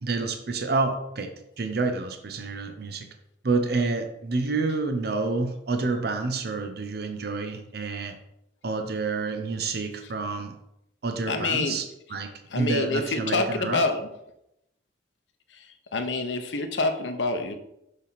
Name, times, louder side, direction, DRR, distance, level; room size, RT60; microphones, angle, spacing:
voice 1, 0.0-3.0 3.4-8.2 8.6-10.5 11.0-11.8 12.1-12.3 12.5-13.8, right 3 dB, 60° right, 6 dB, 0.7 m, -28 dB
voice 2, 11.3-11.8 12.5-14.1 15.5-15.7 15.9-17.6, left 3 dB, 90° left, 7 dB, 0.8 m, -27 dB
6.5 x 3.5 x 5.7 m, 0.82 s
head